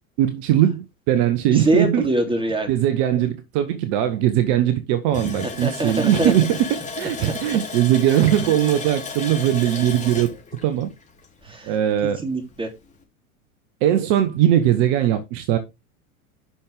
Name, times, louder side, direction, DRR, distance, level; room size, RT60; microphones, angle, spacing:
voice 1, 0.2-2.1 2.7-10.3 10.6-10.9 11.6-12.2 13.8-15.6, right 11 dB, 50° right, 1.3 m, -20 dB
voice 2, 1.5-2.7 5.1-6.3 11.4-11.7 12.2-12.7, right 1 dB, 10° right, 3.2 m, -24 dB
Water tap faucet, 5.1-11.6 12.0-12.1 12.5-12.7, left 5 dB, 15° left, 3.2 m, -34 dB
9.9 x 6.2 x 3.6 m
hypercardioid pair, 90°, 43 cm